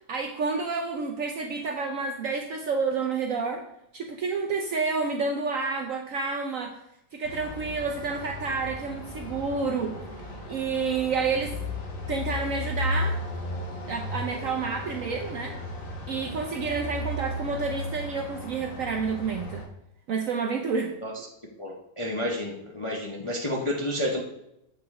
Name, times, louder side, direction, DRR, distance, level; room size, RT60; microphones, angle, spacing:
voice 1, 0.1-3.6 3.9-6.8 7.1-9.9 10.5-11.5 12.1-13.2 13.9-15.5 16.1-19.6 20.1-20.9, right 4 dB, 70° right, 3 dB, 0.8 m, -29 dB
sound 1, 7.2-19.6, left 1 dB, 85° left, 2.0 m, -35 dB
voice 2, 21.6-24.2, left 1 dB, 30° left, -2 dB, 0.5 m, -30 dB
8.0 x 5.0 x 3.6 m, 0.82 s
omnidirectional pair, 2.0 m